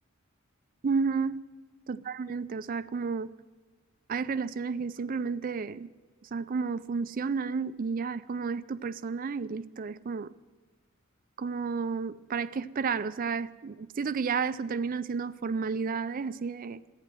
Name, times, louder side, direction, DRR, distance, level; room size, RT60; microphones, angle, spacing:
voice 1, 0.8-1.4 1.9-3.3 4.1-5.9 6.2-10.3 11.4-16.8, right 5 dB, 40° right, 0.4 m, -31 dB
11.5 x 9.1 x 9.2 m
head